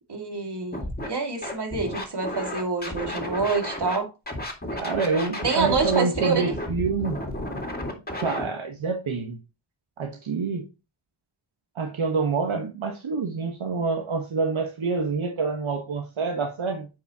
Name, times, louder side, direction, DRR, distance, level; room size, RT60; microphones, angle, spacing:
voice 1, 0.1-4.1 5.4-6.5, right 4 dB, 55° right, 2.2 m, -27 dB
Scratching (performance technique), 0.7-1.1 1.4-4.0 4.3-8.4, left 1 dB, 20° left, 2.1 m, -32 dB
voice 2, 4.7-7.2 8.2-9.4 10.0-10.7 11.7-16.9, right 4 dB, 75° right, 1.3 m, -27 dB
9.0 x 5.1 x 2.9 m
wide cardioid pair, 90°, 48 cm